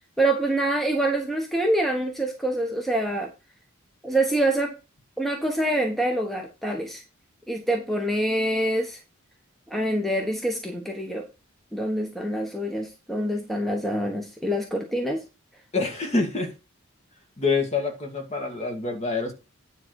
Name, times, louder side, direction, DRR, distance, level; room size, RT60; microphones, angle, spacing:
voice 1, 0.2-3.3 4.0-4.7 5.2-7.0 7.5-9.0 9.7-11.3 11.7-15.2, right 1 dB, ahead, 2 dB, 1.2 m, -25 dB
voice 2, 15.7-16.5 17.4-19.3, left 3 dB, 30° left, 3 dB, 2.0 m, -26 dB
9.9 x 4.0 x 6.4 m, 0.29 s
head